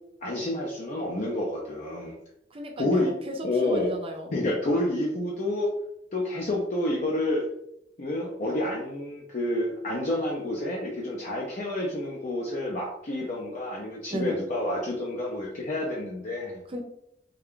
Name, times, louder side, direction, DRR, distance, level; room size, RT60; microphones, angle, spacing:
voice 1, 0.2-2.2 2.8-3.1 3.4-3.9 4.3-5.7 6.1-7.5 8.0-16.6, left 1 dB, 45° left, -3 dB, 0.5 m, -29 dB
voice 2, 2.5-4.3 14.1-14.4 16.7-16.8, right 1 dB, 30° right, 3 dB, 0.5 m, -34 dB
3.3 x 2.3 x 3.6 m, 0.78 s
head